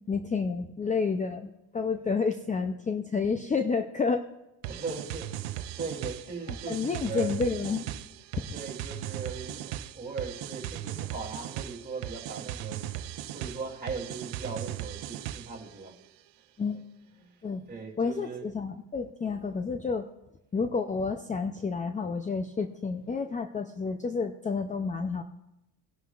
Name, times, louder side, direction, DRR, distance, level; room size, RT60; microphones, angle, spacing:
voice 1, 0.1-4.2 6.7-7.9 8.4-8.5 16.6-16.9 17.4-17.6 18.0-20.1 20.5-25.2, left 4 dB, 20° left, 7 dB, 0.5 m, -30 dB
sound 1, 4.6-15.7, right 12 dB, 85° right, 0.8 m, -38 dB
voice 2, 4.7-5.5 5.8-7.4 8.5-12.8 13.3-15.9 17.2-17.3 17.7-18.4, right 4 dB, 25° right, -3 dB, 3.2 m, -39 dB
19.0 x 11.0 x 2.5 m, 0.90 s
cardioid pair, 115°, 42 cm